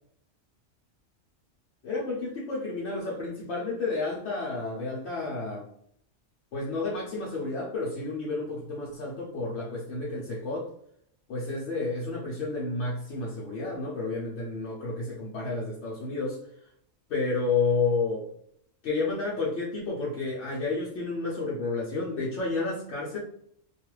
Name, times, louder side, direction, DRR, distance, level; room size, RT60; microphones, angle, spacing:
voice 1, 1.8-5.7 6.5-10.7 11.3-16.7 17.1-18.3 18.8-23.2, left 3 dB, 70° left, -5 dB, 0.9 m, -31 dB
2.5 x 2.3 x 3.1 m, 0.69 s
omnidirectional pair, 1.2 m